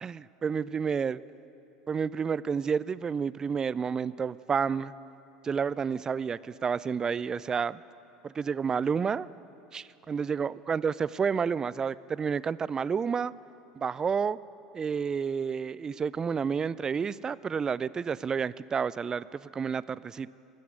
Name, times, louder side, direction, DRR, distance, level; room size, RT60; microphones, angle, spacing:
voice 1, 0.0-1.2 1.9-4.9 5.4-7.8 8.2-9.3 9.7-13.3 13.8-14.4 14.7-20.3, right 6 dB, 25° right, 19 dB, 0.3 m, -30 dB
12.5 x 8.5 x 9.4 m, 2.9 s
hypercardioid pair, 75°, 3 cm